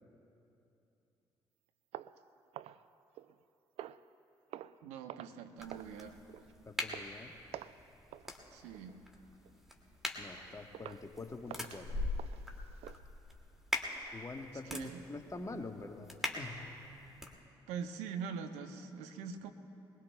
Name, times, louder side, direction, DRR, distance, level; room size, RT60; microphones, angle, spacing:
sound 1, 1.9-3.4 3.8-4.1 4.5-4.8 5.1-5.4 5.7-6.0 6.3-6.5 6.9-7.1 7.5-7.8 8.1-8.3 8.7-9.0 9.4-9.6 10.1-10.2 10.7-11.1 11.5-13.0, right 12 dB, 60° right, 0.4 m, -49 dB
voice 1, 4.8-6.2 8.5-9.0 14.6-15.0 17.7-19.5, right 6 dB, 75° right, 7 dB, 0.9 m, -43 dB
sound 2, 5.6-17.3, left 1 dB, 5° right, 2.3 m, -43 dB
voice 2, 6.7-7.4 10.2-12.1 14.1-16.7, left 3 dB, 25° left, 5 dB, 1.3 m, -45 dB
21.5 x 21.0 x 2.3 m, 2.9 s
hypercardioid pair, 45°, 12 cm